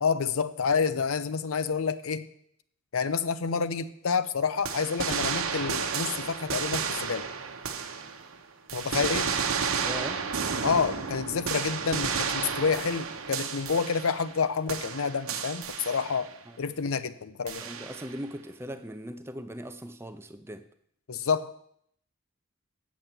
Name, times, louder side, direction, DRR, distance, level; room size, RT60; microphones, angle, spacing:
voice 1, 0.0-2.3 2.9-7.3 8.7-9.3 10.6-16.3 16.6-17.6 21.1-21.5, left 5 dB, 80° left, 13 dB, 0.6 m, -28 dB
sound 1, 4.7-8.4 8.7-14.4 14.7-16.3 17.5-18.2, right 6 dB, 80° right, 1.0 m, -32 dB
voice 2, 9.8-10.2 16.5-16.6 17.6-20.7, equal, 10° right, 9 dB, 0.5 m, -40 dB
8.0 x 7.3 x 7.4 m, 0.70 s
head